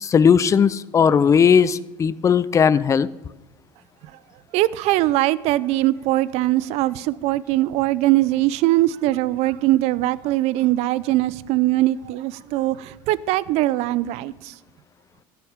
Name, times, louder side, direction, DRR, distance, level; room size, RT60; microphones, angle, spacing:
voice 1, 0.0-3.1, left 7 dB, 25° left, 0.5 m, -17 dB
voice 2, 4.5-14.5, right 16 dB, 65° right, 0.5 m, -21 dB
13.0 x 5.9 x 8.8 m
supercardioid pair, 95°, 12 cm